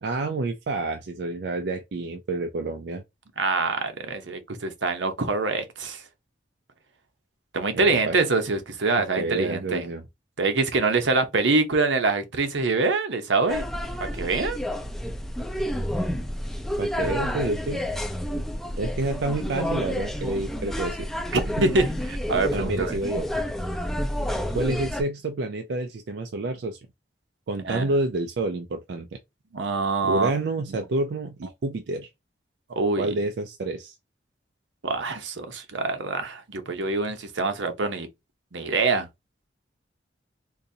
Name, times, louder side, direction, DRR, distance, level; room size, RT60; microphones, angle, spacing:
voice 1, 0.0-3.0 7.7-8.2 9.2-10.0 16.8-17.9 18.8-21.1 21.6-21.7 22.5-23.3 24.5-26.8 27.5-29.2 30.0-32.1 33.0-33.9, right 2 dB, 60° right, 0.4 m, -29 dB
voice 2, 3.4-6.0 7.5-9.9 10.4-13.7 14.1-14.6 21.3-21.9 22.3-23.0 27.6-27.9 29.5-30.3 32.8-33.1 34.8-38.1 38.5-39.1, right 3 dB, 85° right, 0.8 m, -25 dB
sound 1, 13.5-25.0, equal, ahead, 0.5 m, -29 dB
3.9 x 2.6 x 2.7 m
head